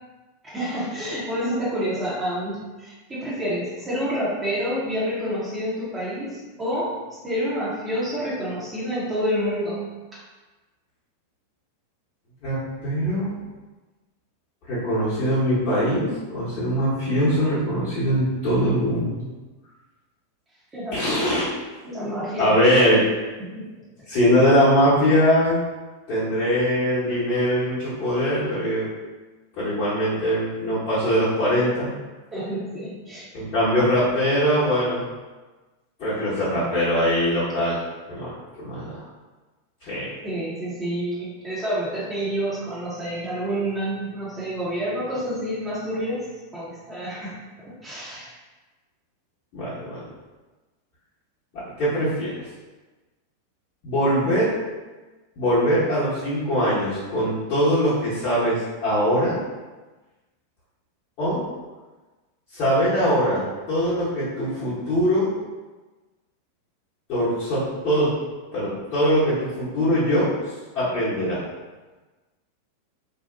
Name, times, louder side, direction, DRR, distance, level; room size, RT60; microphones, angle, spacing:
voice 1, 0.4-7.0 7.2-9.9 20.7-21.3 21.8-22.5 23.4-23.8 32.3-33.2 40.2-46.3 46.5-48.3, equal, 15° right, -9 dB, 0.8 m, -28 dB
voice 2, 12.4-13.4 14.7-19.3 20.9-21.4 22.4-23.0 24.1-25.6 26.1-28.9 29.6-31.9 33.3-35.0 36.0-37.8 38.1-39.0 39.8-40.0 49.5-50.0 51.6-52.3 53.8-54.5 55.4-59.4 61.2-61.4 62.5-65.3 67.1-68.1 68.5-70.3 70.7-71.4, equal, 40° left, -12 dB, 1.0 m, -22 dB
2.7 x 2.0 x 2.6 m, 1.2 s
figure-of-eight pair, 90°, 0 cm